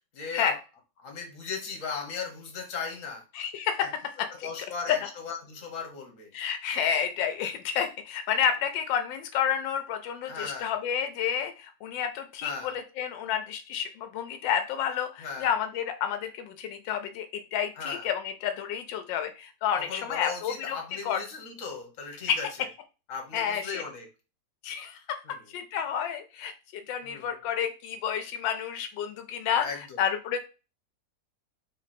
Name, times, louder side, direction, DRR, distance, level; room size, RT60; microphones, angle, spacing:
voice 1, 0.1-0.6 1.0-3.2 3.8-3.9 4.4-6.3 10.3-10.7 12.4-12.7 15.2-15.5 17.8-18.1 19.8-22.7 23.1-24.1 25.2-25.4 27.0-27.3 29.6-30.0, left 5 dB, 50° left, 3 dB, 1.4 m, -37 dB
voice 2, 3.3-3.9 5.0-5.1 6.3-20.8 21.0-21.2 22.3-22.4 23.3-23.8 24.6-25.2 25.5-26.5 26.9-29.7 30.0-30.4, left 8 dB, 85° left, 8 dB, 1.3 m, -30 dB
3.7 x 3.1 x 4.1 m, 0.31 s
omnidirectional pair, 2.0 m